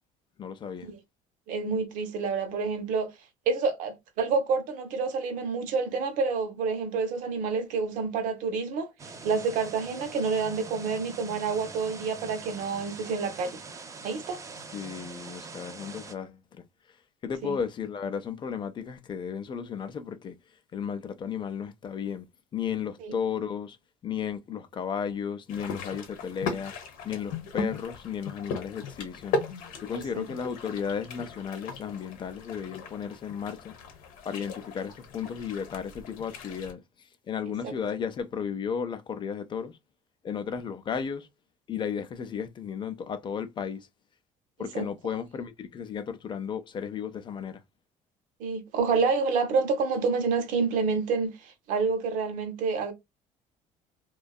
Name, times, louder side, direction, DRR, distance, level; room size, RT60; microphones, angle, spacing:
voice 1, 0.4-0.9 14.7-16.6 17.2-20.4 20.7-23.8 24.0-26.7 27.0-33.8 34.2-36.8 37.3-39.8 40.2-41.3 41.7-43.9 44.6-47.6, left 7 dB, 35° left, 0.4 m, -34 dB
voice 2, 1.5-3.1 3.5-8.9 9.2-13.6 14.0-14.4 17.4-17.6 23.0-23.1 29.9-30.3 37.6-37.7 44.7-44.9 48.4-52.9, right 4 dB, 75° right, 0.7 m, -28 dB
sound 1, 9.0-16.1, right 4 dB, 25° right, 0.5 m, -43 dB
sound 2, 25.5-36.7, left 4 dB, 80° left, 0.8 m, -37 dB
2.6 x 2.2 x 2.2 m
cardioid pair, 120°, 14 cm